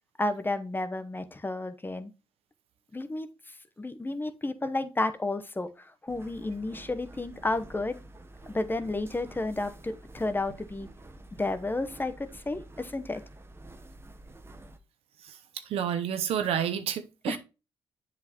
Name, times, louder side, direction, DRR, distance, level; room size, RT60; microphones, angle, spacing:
voice 1, 0.2-2.1 2.9-3.3 3.8-8.0 8.5-10.9 11.4-13.2 17.3-17.4, left 2 dB, 20° left, 0.9 m, -32 dB
sound 1, 6.1-14.8, right 1 dB, 25° right, 0.9 m, -49 dB
voice 2, 15.2-17.4, right 9 dB, 85° right, 0.8 m, -30 dB
7.6 x 5.9 x 3.0 m
cardioid pair, 65°, 10 cm